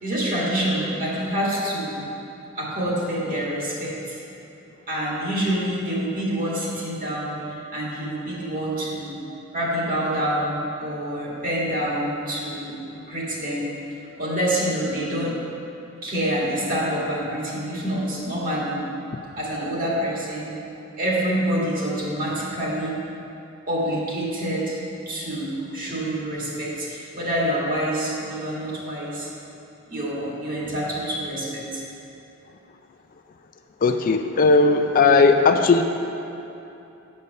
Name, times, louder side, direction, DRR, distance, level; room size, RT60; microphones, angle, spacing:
voice 1, 0.0-2.0 2.6-4.2 4.9-9.2 9.5-12.8 13.1-13.7 14.2-15.4 16.0-18.8 19.4-20.6 21.0-23.0 23.7-24.8 25.1-29.3 29.9-31.8, right 1 dB, 40° right, -5 dB, 2.1 m, -26 dB
voice 2, 33.8-35.8, left 4 dB, 40° left, 6 dB, 0.4 m, -17 dB
8.9 x 5.3 x 6.6 m, 2.9 s
head